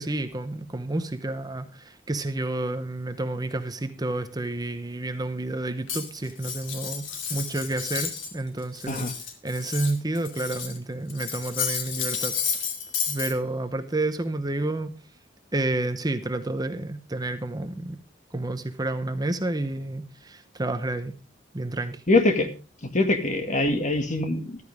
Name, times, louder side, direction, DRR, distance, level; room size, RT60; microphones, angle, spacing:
voice 1, 0.0-7.0 7.3-9.1 9.4-12.4 13.1-14.9 15.5-18.0 18.3-21.1 21.5-22.0, right 2 dB, 20° right, 10 dB, 0.9 m, -30 dB
Cutlery silverware, 5.9-8.3 8.6-10.8 11.1-13.3, left 6 dB, 90° left, 2.5 m, -31 dB
voice 2, 22.1-22.5 22.9-24.6, left 2 dB, 40° left, 6 dB, 2.1 m, -23 dB
14.5 x 13.0 x 3.6 m, 0.33 s
head